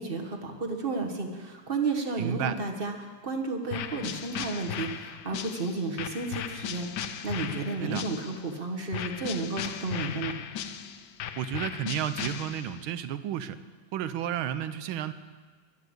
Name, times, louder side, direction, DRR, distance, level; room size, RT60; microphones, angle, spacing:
voice 1, 0.0-10.4, right 3 dB, 30° right, 3 dB, 1.3 m, -32 dB
voice 2, 2.2-2.6 7.8-8.0 11.3-13.6 13.9-15.1, right 10 dB, 75° right, 12 dB, 1.5 m, -32 dB
sound 1, 3.7-8.5 8.9-12.9, left 9 dB, 70° left, 1.1 m, -37 dB
12.5 x 11.5 x 7.9 m, 1.5 s
omnidirectional pair, 2.4 m